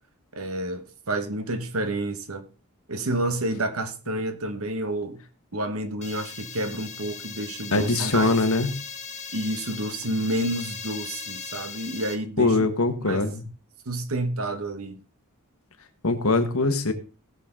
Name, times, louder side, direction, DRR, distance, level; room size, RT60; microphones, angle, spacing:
voice 1, 0.3-2.5 2.9-5.2 5.5-8.3 9.3-12.7 13.0-13.2 13.9-15.0, right 1 dB, 70° right, 1.3 m, -29 dB
sound 1, 6.0-12.1, left 6 dB, 30° left, 1.5 m, -38 dB
voice 2, 7.7-8.7 12.4-13.4 16.0-16.9, left 3 dB, 70° left, 1.6 m, -22 dB
18.0 x 6.8 x 3.8 m
head